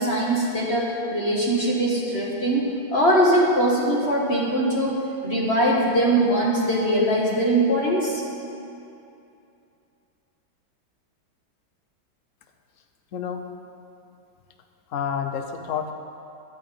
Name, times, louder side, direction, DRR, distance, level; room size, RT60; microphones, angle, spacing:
voice 1, 0.0-8.2, right 1 dB, 35° left, -4 dB, 1.5 m, -22 dB
voice 2, 14.9-15.9, left 7 dB, 60° left, 6 dB, 0.8 m, -29 dB
11.5 x 5.6 x 8.7 m, 2.7 s
omnidirectional pair, 2.2 m